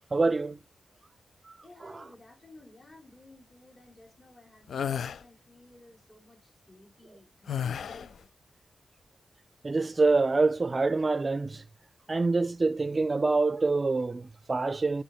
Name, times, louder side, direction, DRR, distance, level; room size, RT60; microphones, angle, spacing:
voice 1, 0.1-0.6 1.8-1.9 9.6-11.6 12.1-15.0, right 3 dB, 35° right, 0.5 m, -26 dB
voice 2, 1.6-8.7, left 2 dB, 25° left, 4.0 m, -55 dB
sound 1, 4.7-5.2 7.5-8.2, left 8 dB, 85° left, 0.4 m, -32 dB
10.0 x 5.7 x 5.6 m
cardioid pair, 90°, 0 cm